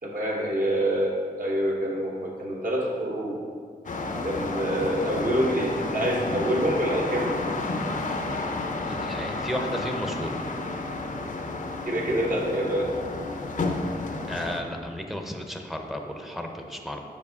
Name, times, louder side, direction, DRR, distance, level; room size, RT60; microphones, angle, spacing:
voice 1, 0.0-3.3 4.2-7.5 11.8-12.9, right 1 dB, 60° right, -3 dB, 1.3 m, -26 dB
sound 1, 3.8-14.6, left 2 dB, 55° left, 0.6 m, -31 dB
voice 2, 8.9-10.4 14.3-17.0, equal, ahead, 3 dB, 0.7 m, -33 dB
7.0 x 4.6 x 3.6 m, 2.1 s
cardioid pair, 60°, 16 cm